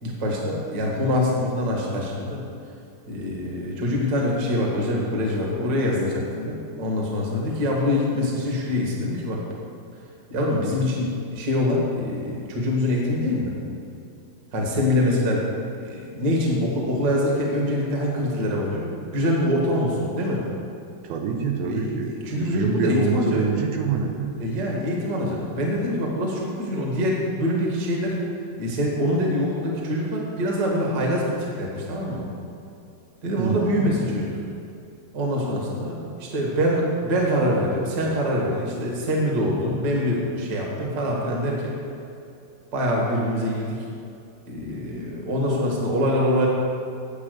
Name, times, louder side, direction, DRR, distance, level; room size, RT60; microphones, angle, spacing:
voice 1, 0.0-2.4 3.1-9.4 10.3-13.5 14.5-15.4 15.8-20.4 21.6-23.4 24.4-28.1 28.6-32.3 33.2-34.4 35.1-41.8 42.7-43.8 44.5-46.5, left 1 dB, 35° right, -2 dB, 1.6 m, -24 dB
voice 2, 21.0-24.3 33.4-34.0, right 5 dB, 80° right, 3 dB, 2.6 m, -26 dB
8.7 x 8.7 x 6.7 m, 2.6 s
omnidirectional pair, 4.5 m